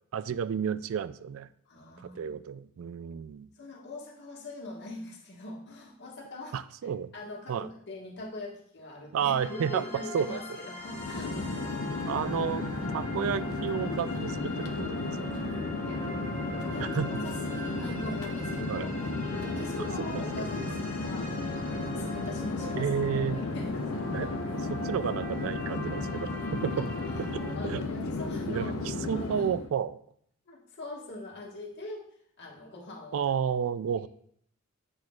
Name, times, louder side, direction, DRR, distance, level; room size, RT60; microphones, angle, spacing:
voice 1, 0.1-1.5 2.0-3.5 6.5-7.1 7.5-7.7 9.1-9.8 10.1-10.4 12.0-12.6 12.9-15.2 16.8-17.2 18.7-18.9 20.1-20.2 22.7-23.4 24.1-24.3 24.7-26.9 27.3-27.8 28.5-30.0 33.1-34.1, right 7 dB, 65° right, 16 dB, 0.3 m, -31 dB
voice 2, 1.7-2.4 3.5-11.3 12.0-12.2 15.8-16.1 16.5-19.0 19.4-21.3 21.6-22.9 23.5-24.3 27.0-27.2 27.5-28.8 29.1-29.5 30.5-33.2, left 2 dB, 55° left, -2 dB, 1.6 m, -42 dB
sound 1, 9.4-27.5, left 1 dB, 10° left, 2.1 m, -42 dB
Chatter / Fixed-wing aircraft airplane, 10.8-29.7, left 3 dB, 85° left, 0.7 m, -34 dB
8.7 x 6.1 x 2.4 m, 0.66 s
head